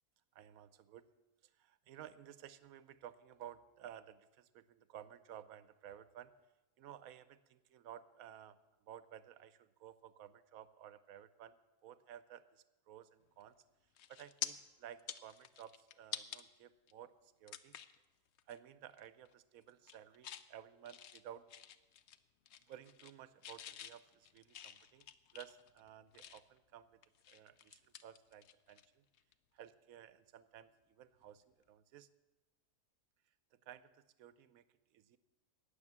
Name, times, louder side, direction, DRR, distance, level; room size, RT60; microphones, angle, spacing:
voice 1, 0.3-1.1 1.4-6.3 6.8-13.6 14.1-17.8 18.5-21.5 22.6-27.0 27.3-29.0 29.5-32.1 33.5-34.7 34.9-35.2, right 10 dB, 70° right, 15 dB, 1.0 m, -55 dB
sound 1, 13.4-13.6 14.0-14.5 14.9-16.4 16.9-17.0 17.5-18.0 18.4-18.6 18.9-19.3 19.7-20.5 20.9-22.2 22.5-23.2 23.4-26.6 27.0-28.9 29.1-29.3 31.2-31.4, left 10 dB, 65° left, 0.7 m, -48 dB
18.5 x 6.9 x 7.3 m, 1.1 s
omnidirectional pair, 1.6 m